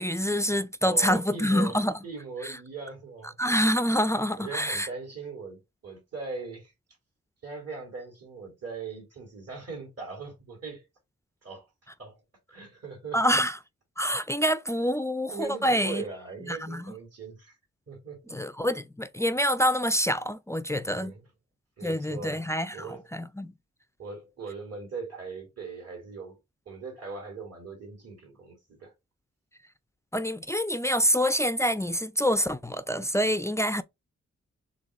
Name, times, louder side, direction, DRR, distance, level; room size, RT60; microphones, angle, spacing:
voice 1, 0.0-1.9 2.4-2.5 3.4-4.9 13.1-13.6 14.0-16.0 16.5-16.8 18.3-21.1 21.8-22.9 23.1-23.5 30.1-33.8, equal, 10° left, 0.3 m, -26 dB
voice 2, 0.8-3.3 4.4-6.7 7.4-10.8 11.4-11.7 12.0-12.2 12.5-13.2 15.3-17.6 17.9-18.4 20.8-21.2 21.8-23.1 24.0-26.4 26.7-28.9, right 4 dB, 55° right, 2.1 m, -40 dB
3.9 x 3.5 x 3.0 m
cardioid pair, 55°, 29 cm